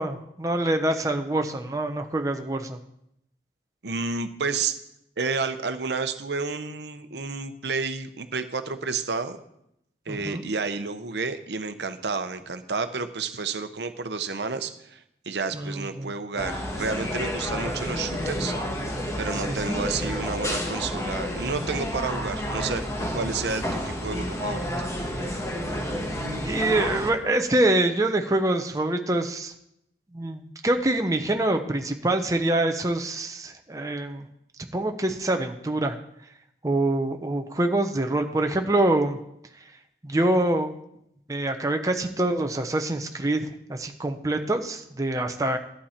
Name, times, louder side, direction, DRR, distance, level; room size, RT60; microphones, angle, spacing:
voice 1, 0.0-2.8 10.1-10.4 15.5-16.1 19.5-19.6 26.5-29.5 30.1-34.3 34.7-36.0 36.6-39.2 40.0-40.7 41.3-45.6, right 1 dB, 20° right, 5 dB, 0.7 m, -25 dB
voice 2, 3.8-4.7 5.2-9.4 10.1-15.0 15.3-18.6 19.2-24.7, right 4 dB, 70° right, 9 dB, 0.8 m, -30 dB
sound 1, 16.4-27.1, equal, 15° left, 1.2 m, -30 dB
11.5 x 8.7 x 4.3 m, 0.78 s
head